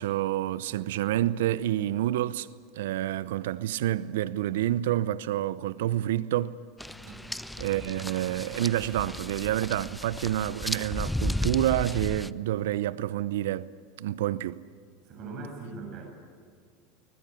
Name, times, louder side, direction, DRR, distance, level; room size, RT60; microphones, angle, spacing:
voice 1, 0.0-2.5 2.8-6.6 7.6-13.7 14.0-14.6, right 13 dB, 75° right, 0.7 m, -28 dB
sound 1, 6.8-12.3, left 1 dB, 5° left, 0.6 m, -34 dB
voice 2, 7.0-7.4 15.0-16.1, right 3 dB, 50° right, 7.6 m, -41 dB
21.5 x 20.5 x 8.2 m
hypercardioid pair, 90°, 0 cm